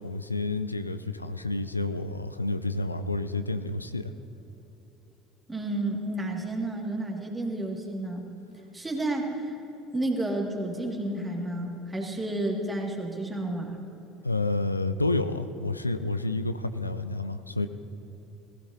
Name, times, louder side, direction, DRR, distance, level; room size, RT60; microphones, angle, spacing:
voice 1, 0.0-4.1 14.2-17.7, left 2 dB, 90° left, 11 dB, 0.4 m, -29 dB
voice 2, 5.5-8.2 8.7-9.6 9.9-13.8, right 1 dB, 15° right, 0 dB, 2.2 m, -31 dB
18.5 x 15.5 x 2.8 m, 2.9 s
figure-of-eight pair, 65°, 0 cm